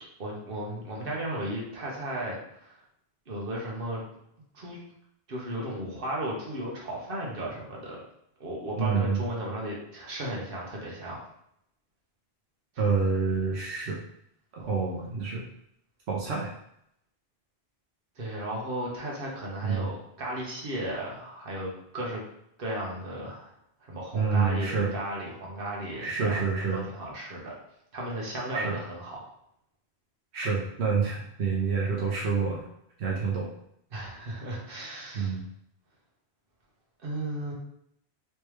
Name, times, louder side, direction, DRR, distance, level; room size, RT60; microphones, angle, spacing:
voice 1, 0.2-2.8 3.3-4.0 4.5-4.8 5.3-8.0 8.4-11.2 18.2-22.2 22.6-23.5 23.8-27.5 27.9-29.3 33.9-35.4 37.0-37.5, right 1 dB, 60° right, -3 dB, 1.2 m, -35 dB
voice 2, 8.8-9.2 12.8-14.0 14.5-15.4 16.1-16.5 19.6-19.9 24.1-24.9 26.0-26.8 28.5-28.7 30.3-32.7 33.0-33.4 35.1-35.4, right 5 dB, 85° right, -3 dB, 1.0 m, -27 dB
3.3 x 3.2 x 3.1 m, 0.74 s
omnidirectional pair, 1.1 m